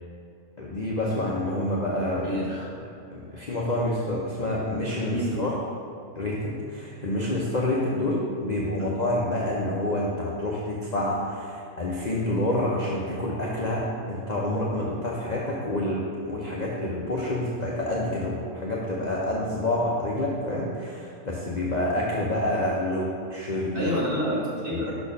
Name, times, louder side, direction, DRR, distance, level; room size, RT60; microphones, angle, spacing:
voice 1, 0.6-2.3 3.1-5.5 6.1-23.9 24.7-24.9, left 1 dB, 45° left, -4 dB, 0.6 m, -28 dB
voice 2, 2.2-2.7 5.1-5.5 8.8-8.9 23.7-24.9, left 1 dB, 40° right, -7 dB, 1.7 m, -28 dB
5.8 x 4.4 x 5.2 m, 2.4 s
omnidirectional pair, 1.4 m